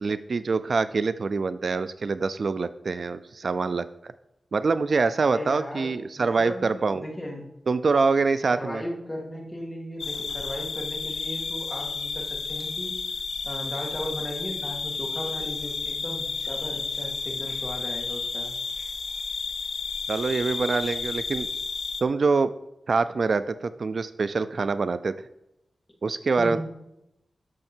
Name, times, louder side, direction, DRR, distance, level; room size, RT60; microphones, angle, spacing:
voice 1, 0.0-4.1 4.5-7.0 7.7-8.8 20.1-21.5 22.0-22.5 22.9-25.1 26.0-26.6, right 4 dB, 60° right, 13 dB, 0.4 m, -25 dB
voice 2, 5.2-7.5 8.5-13.0 13.4-18.5 26.4-26.6, left 1 dB, 15° left, 0 dB, 2.2 m, -36 dB
sound 1, 10.0-22.0, left 4 dB, 75° left, 0.8 m, -32 dB
12.5 x 6.4 x 4.4 m, 0.88 s
wide cardioid pair, 110°, 0 cm